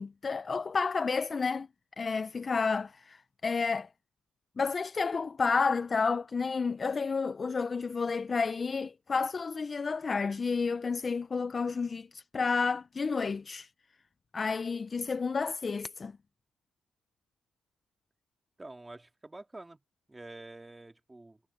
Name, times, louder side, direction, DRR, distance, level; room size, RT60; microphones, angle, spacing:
voice 1, 0.0-1.7 2.0-3.9 4.6-13.7 14.3-16.1, left 4 dB, 35° left, 0.6 m, -31 dB
voice 2, 18.6-19.8 20.1-21.4, right 2 dB, 15° right, 2.2 m, -47 dB
cardioid pair, 90°, 0 cm